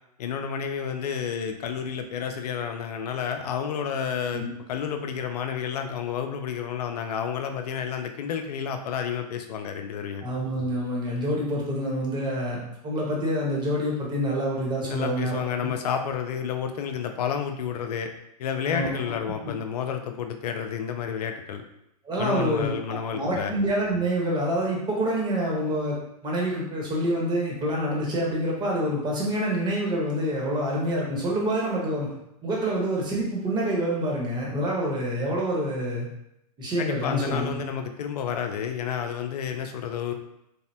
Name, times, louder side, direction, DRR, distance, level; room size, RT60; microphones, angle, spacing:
voice 1, 0.2-10.2 14.9-18.1 18.4-21.6 22.2-23.5 36.8-40.1, left 7 dB, 75° left, 6 dB, 0.4 m, -30 dB
voice 2, 10.2-15.7 18.6-18.9 22.0-26.0 26.2-32.1 32.4-36.1 36.6-37.6, right 1 dB, 20° right, -3 dB, 1.0 m, -27 dB
3.3 x 2.0 x 2.7 m, 0.81 s
hypercardioid pair, 115°, 20 cm